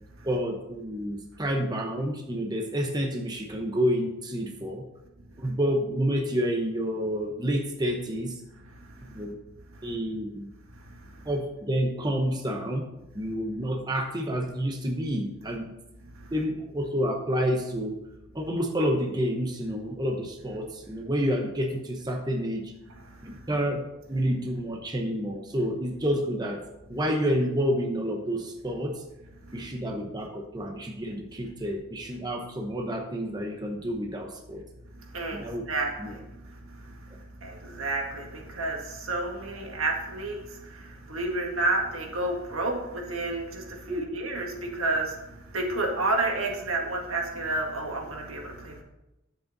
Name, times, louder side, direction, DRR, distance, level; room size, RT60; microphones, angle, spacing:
voice 1, 0.2-4.8 5.4-8.4 9.0-9.4 9.8-10.5 11.3-12.8 13.1-15.7 16.3-18.0 18.3-22.7 23.2-23.8 24.1-26.6 26.9-29.0 29.5-34.6 35.3-35.6 36.0-36.1 43.9-44.0, equal, 20° right, 2 dB, 0.9 m, -29 dB
voice 2, 35.1-36.3 37.1-45.2 45.5-48.8, right 2 dB, 85° right, 1 dB, 1.8 m, -30 dB
9.9 x 7.8 x 4.0 m, 0.94 s
head